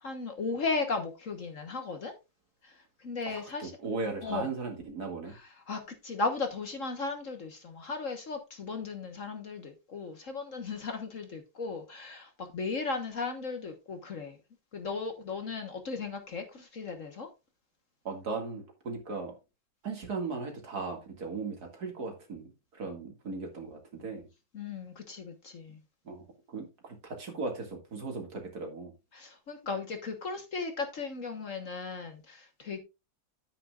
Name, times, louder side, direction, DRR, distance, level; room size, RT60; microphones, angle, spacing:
voice 1, 0.0-2.1 2.6-2.7 3.0-3.7 4.2-4.5 5.3-14.4 14.7-17.3 24.5-25.8 29.1-32.8, left 4 dB, 50° left, 1.4 m, -36 dB
voice 2, 3.3-5.3 18.0-19.4 19.8-24.2 26.0-28.9, right 4 dB, 60° right, 2.6 m, -37 dB
10.0 x 8.9 x 2.4 m
omnidirectional pair, 1.9 m